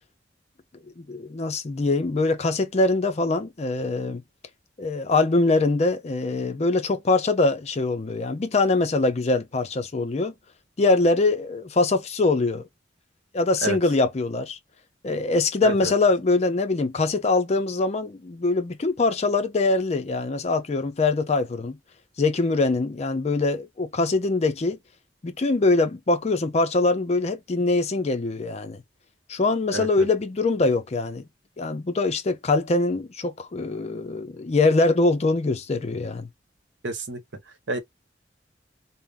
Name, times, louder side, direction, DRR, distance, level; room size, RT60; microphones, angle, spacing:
voice 1, 0.7-4.2 4.8-10.3 10.8-12.7 13.3-14.6 15.0-21.8 22.2-24.8 25.2-28.8 29.3-31.3 31.6-36.3, left 3 dB, 35° left, 0.5 m, -23 dB
voice 2, 36.8-37.2 37.7-37.8, right 2 dB, 85° right, 0.9 m, -28 dB
2.5 x 2.0 x 3.4 m
head